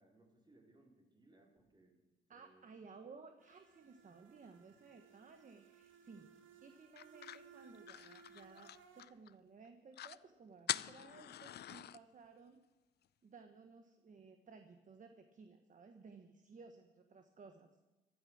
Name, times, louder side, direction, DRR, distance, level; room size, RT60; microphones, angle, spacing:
voice 1, 0.0-2.7 6.1-6.3, right 2 dB, 20° right, 0 dB, 4.6 m, -67 dB
voice 2, 2.3-6.3 6.6-12.6 13.2-17.7, right 4 dB, 40° right, 7 dB, 1.3 m, -58 dB
sound 1, 3.4-9.1, right 6 dB, 80° right, 2.3 m, -62 dB
sound 2, 7.0-9.3 9.6-9.7 9.9-10.2 10.7-12.0, left 12 dB, 55° left, 0.5 m, -44 dB
15.5 x 13.0 x 6.3 m, 1.1 s
cardioid pair, 90°, 20 cm